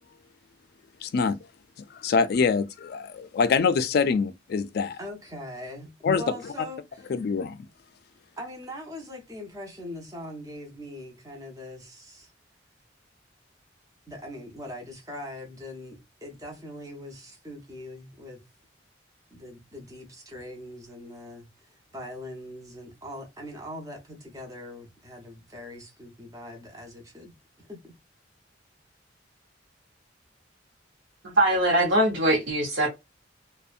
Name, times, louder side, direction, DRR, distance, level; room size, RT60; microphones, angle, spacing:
voice 1, 1.0-1.4 1.9-5.0 6.0-6.5 7.1-7.6, left 5 dB, 55° left, 0.3 m, -25 dB
voice 2, 5.0-7.1 8.4-12.3 14.1-18.4 19.3-27.3 27.6-27.9, left 1 dB, 20° right, 0.7 m, -41 dB
voice 3, 31.2-32.9, right 1 dB, 70° right, 0.8 m, -22 dB
2.5 x 2.1 x 2.4 m
head